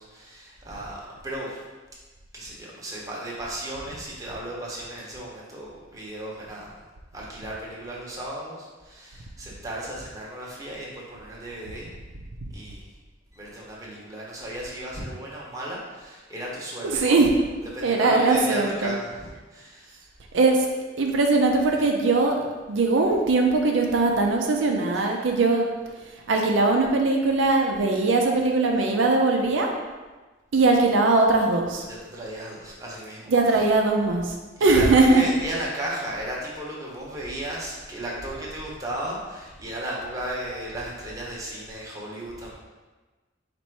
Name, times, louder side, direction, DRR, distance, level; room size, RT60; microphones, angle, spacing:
voice 1, 0.0-1.6 2.3-6.8 7.1-11.9 12.5-12.9 13.3-17.2 17.6-20.0 31.9-33.6 34.6-42.6, right 1 dB, 20° right, -5 dB, 0.9 m, -35 dB
voice 2, 16.8-17.3 17.8-18.9 20.3-20.7 21.0-22.4 22.7-25.7 26.3-29.7 30.5-31.8 33.3-34.3 34.6-35.2, right 3 dB, 85° right, 1 dB, 0.5 m, -20 dB
4.1 x 2.6 x 4.5 m, 1.3 s
head